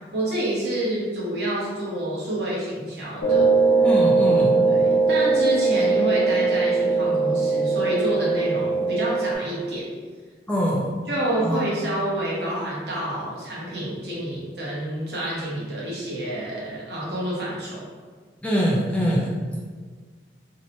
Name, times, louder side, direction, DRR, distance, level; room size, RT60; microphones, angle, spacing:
voice 1, 0.1-3.5 4.7-9.9 11.1-17.8, right 1 dB, 70° right, -6 dB, 0.8 m, -28 dB
sound 1, 3.2-9.3, right 4 dB, 90° left, 0.5 m, -20 dB
voice 2, 3.8-4.6 10.5-10.9 11.4-11.6 18.4-19.4, equal, 5° left, -6 dB, 0.3 m, -23 dB
2.6 x 2.1 x 2.8 m, 1.5 s
head